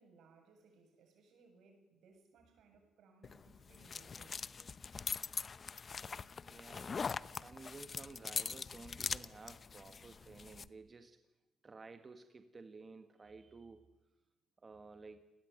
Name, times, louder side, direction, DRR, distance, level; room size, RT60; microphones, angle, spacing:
voice 1, 0.0-4.5, right 4 dB, 75° right, 4 dB, 7.8 m, -65 dB
sound 1, 3.2-10.7, left 5 dB, 40° left, 0.8 m, -42 dB
voice 2, 6.4-7.0 7.4-11.2 11.6-13.9 14.6-15.2, right 4 dB, 30° right, 8 dB, 1.7 m, -54 dB
29.0 x 19.5 x 9.4 m, 1.1 s
cardioid pair, 90°, 0 cm